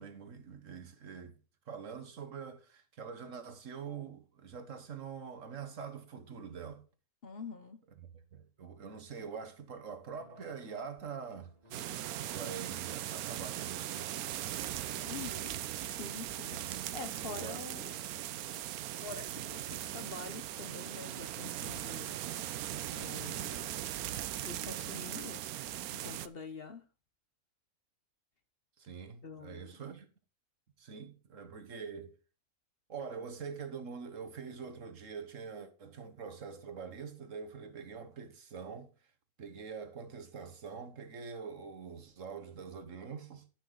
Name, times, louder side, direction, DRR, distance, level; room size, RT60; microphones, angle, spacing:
voice 1, 0.0-1.3 1.7-6.8 8.0-11.9 12.3-14.1 16.5-17.0 17.2-17.9 28.8-30.1 30.8-32.2 32.9-38.9 39.4-43.4, right 6 dB, 60° right, 1.5 m, -45 dB
voice 2, 7.2-7.8 15.0-16.6 16.9-17.9 19.0-22.2 22.9-23.7 24.4-25.4 25.9-26.8 29.2-29.8, left 5 dB, 45° left, 0.9 m, -46 dB
sound 1, 10.2-13.0 13.4-13.7 14.1-14.2, left 2 dB, 25° right, 2.0 m, -61 dB
sound 2, 11.7-26.3, right 12 dB, 80° right, 1.1 m, -39 dB
12.5 x 5.9 x 3.9 m
omnidirectional pair, 1.6 m